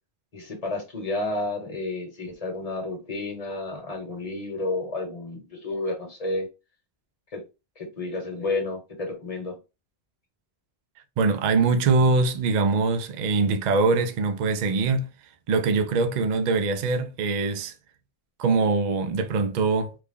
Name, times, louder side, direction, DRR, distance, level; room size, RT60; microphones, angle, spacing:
voice 1, 0.3-6.5 7.3-7.4 7.8-9.6, left 2 dB, 40° left, 1.0 m, -31 dB
voice 2, 11.2-15.1 15.5-17.7 18.4-20.0, right 4 dB, 55° right, 0.6 m, -23 dB
3.1 x 2.3 x 3.6 m
omnidirectional pair, 1.1 m